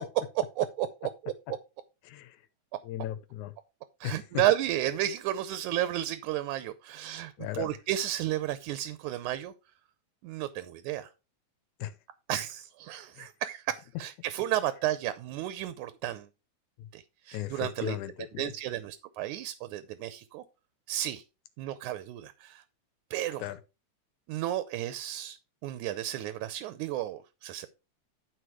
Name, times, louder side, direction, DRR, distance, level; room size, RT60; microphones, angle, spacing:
voice 1, 0.4-1.6 4.0-9.5 10.2-11.1 12.3-16.3 16.9-18.0 18.4-20.4 20.9-21.2 21.6-22.6 23.1-23.5 24.3-25.4 25.6-27.7, right 13 dB, 85° right, 2.1 m, -32 dB
voice 2, 2.1-2.4 2.8-3.5 4.0-4.2 7.4-7.7 11.8-11.9 13.2-13.3 16.8-16.9 17.3-18.5 23.4-23.6, left 13 dB, 90° left, 2.3 m, -36 dB
11.5 x 4.9 x 4.7 m
omnidirectional pair, 3.4 m